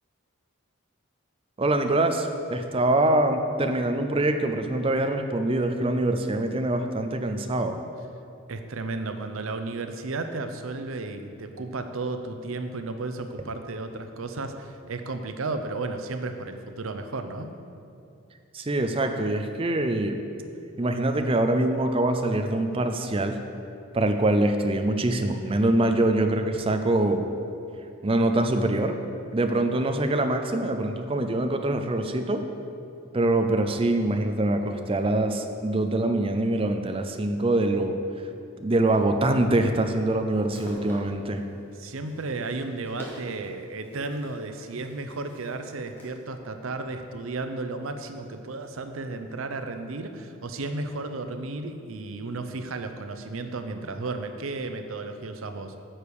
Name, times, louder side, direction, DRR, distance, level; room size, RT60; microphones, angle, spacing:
voice 1, 1.6-7.8 18.5-20.2 20.8-23.4 23.9-27.2 28.0-28.9 29.3-32.4 33.1-38.0 38.6-41.4, right 2 dB, 25° right, 6 dB, 0.5 m, -24 dB
voice 2, 8.5-17.5 41.7-55.8, right 3 dB, 80° right, 7 dB, 0.7 m, -33 dB
sound 1, 40.3-46.2, equal, 10° left, 1.6 m, -46 dB
10.0 x 6.9 x 4.8 m, 2.6 s
head